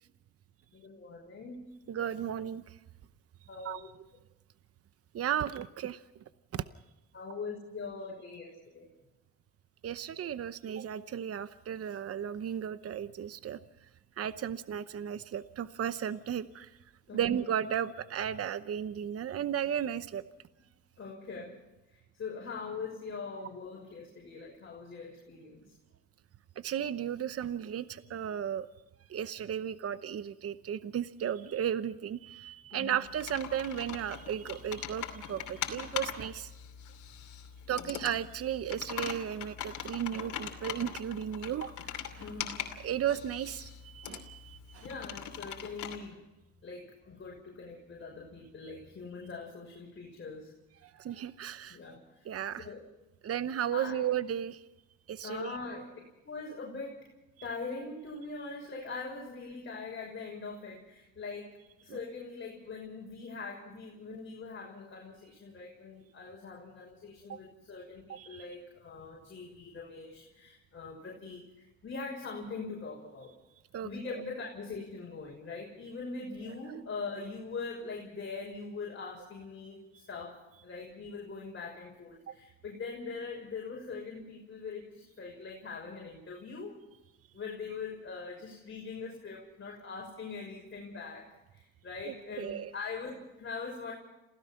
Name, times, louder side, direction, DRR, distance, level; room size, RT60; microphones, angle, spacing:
voice 1, 0.7-1.6 3.5-3.9 7.1-8.8 17.1-17.3 21.0-21.6 21.9-25.7 32.7-33.0 37.7-37.9 42.2-42.5 44.8-46.2 46.6-50.5 51.7-52.3 52.6-52.9 53.7-54.1 55.2-55.9 56.2-57.1 57.4-61.5 61.8-73.3 73.8-86.8 87.3-93.9, left 4 dB, 40° left, -2 dB, 6.2 m, -42 dB
voice 2, 1.9-2.8 3.6-3.8 5.1-6.0 6.5-6.6 9.8-13.6 14.2-16.7 17.1-20.2 26.6-28.7 29.1-36.5 37.7-41.7 42.2-42.3 42.8-44.9 50.8-51.8 52.3-52.7 53.2-54.6 55.1-55.5 61.9-62.0 67.3-67.4 68.1-68.4 73.7-73.9 82.3-82.4 92.4-92.7, right 9 dB, 50° right, 13 dB, 0.9 m, -34 dB
Computer keyboard, 33.1-46.0, left 9 dB, 80° left, 2.8 m, -42 dB
28.0 x 17.0 x 5.8 m, 1.0 s
cardioid pair, 90°, 30 cm